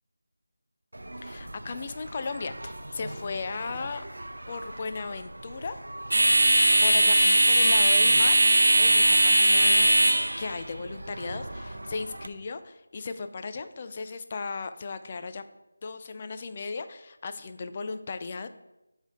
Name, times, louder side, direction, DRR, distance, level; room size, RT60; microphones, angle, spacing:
sound 1, 0.9-12.3, right 1 dB, 85° right, 0.6 m, -23 dB
voice 1, 1.2-4.0 4.5-5.8 6.8-8.4 8.8-15.4 15.8-18.5, left 4 dB, 25° left, 9 dB, 0.4 m, -36 dB
7.5 x 3.3 x 5.6 m, 0.97 s
figure-of-eight pair, 175°, 0 cm